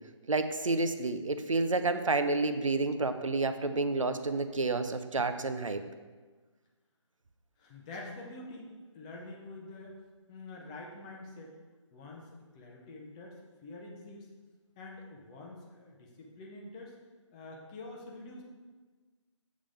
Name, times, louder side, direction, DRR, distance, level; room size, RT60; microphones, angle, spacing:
voice 1, 0.3-5.8, right 3 dB, 85° right, 9 dB, 0.6 m, -30 dB
voice 2, 7.6-10.0 10.3-11.6 11.9-14.3 14.8-17.0 17.3-18.4, left 2 dB, 15° left, -1 dB, 0.5 m, -46 dB
7.3 x 3.7 x 4.9 m, 1.4 s
figure-of-eight pair, 155°, 16 cm